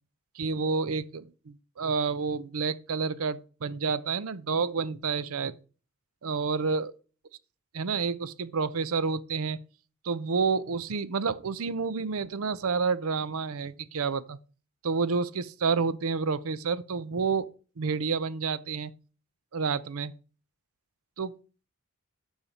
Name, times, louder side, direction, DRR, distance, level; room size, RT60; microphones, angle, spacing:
voice 1, 0.4-5.6 6.2-6.9 7.7-9.6 10.0-14.4 14.8-17.5 17.8-18.9 19.5-20.1 21.2-21.3, right 5 dB, 70° right, 0.6 m, -29 dB
7.0 x 5.7 x 5.0 m
head